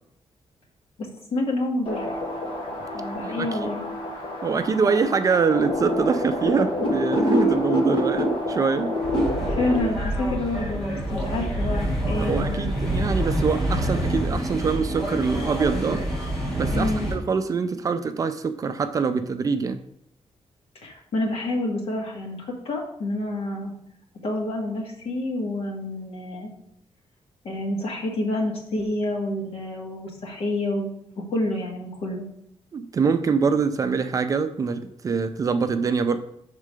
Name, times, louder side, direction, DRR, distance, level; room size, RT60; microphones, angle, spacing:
voice 1, 1.0-2.2 2.9-3.8 9.4-12.7 16.7-17.1 20.8-23.7 24.2-26.5 27.4-30.9 31.3-32.3, left 1 dB, 65° left, 0 dB, 1.6 m, -28 dB
sound 1, 1.9-9.8, left 1 dB, 50° left, 1.2 m, -27 dB
voice 2, 3.2-3.7 4.4-8.9 12.2-16.0 16.5-19.8 32.7-36.2, right 5 dB, 35° right, 9 dB, 0.4 m, -24 dB
sound 2, 9.0-17.1, right 1 dB, 5° left, 2.4 m, -27 dB
6.5 x 3.7 x 4.8 m, 0.74 s
wide cardioid pair, 170°, 11 cm